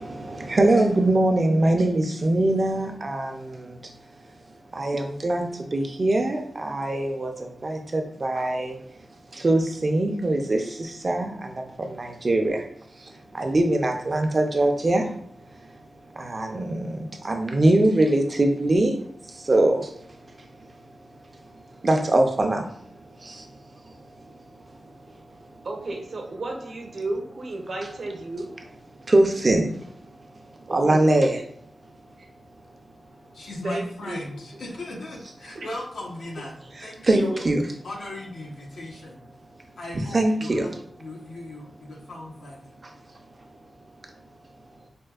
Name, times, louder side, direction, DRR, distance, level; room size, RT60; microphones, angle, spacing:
voice 1, 0.0-3.9 4.7-8.8 9.3-12.6 13.0-15.1 16.2-19.0 19.3-19.9 21.8-22.8 23.0-23.4 29.1-29.9 30.7-31.4 37.0-37.6 40.1-40.7, right 2 dB, 40° right, 3 dB, 0.5 m, -23 dB
voice 2, 25.6-28.5 30.7-31.1 33.6-34.2 35.5-35.7 37.1-37.4, right 2 dB, 65° right, 0 dB, 0.8 m, -32 dB
voice 3, 32.6-37.5 37.8-39.2 39.8-42.7, left 1 dB, 80° left, -2 dB, 0.8 m, -38 dB
4.3 x 2.3 x 2.3 m, 0.68 s
wide cardioid pair, 115°, 0 cm